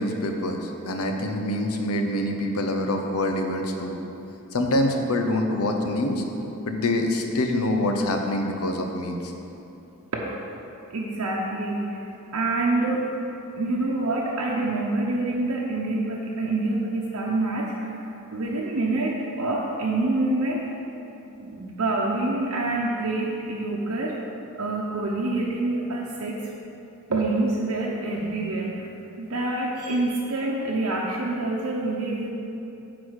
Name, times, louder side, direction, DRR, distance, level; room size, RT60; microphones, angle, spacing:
voice 1, 0.0-4.0 4.5-6.2 6.7-9.3, left 1 dB, 90° left, 3 dB, 0.9 m, -25 dB
voice 2, 10.9-12.1 12.3-13.1 13.6-20.6 21.4-24.1 24.5-26.4 27.1-28.9 29.2-32.3, right 2 dB, 80° right, -3 dB, 0.8 m, -26 dB
9.6 x 4.1 x 6.4 m, 2.9 s
head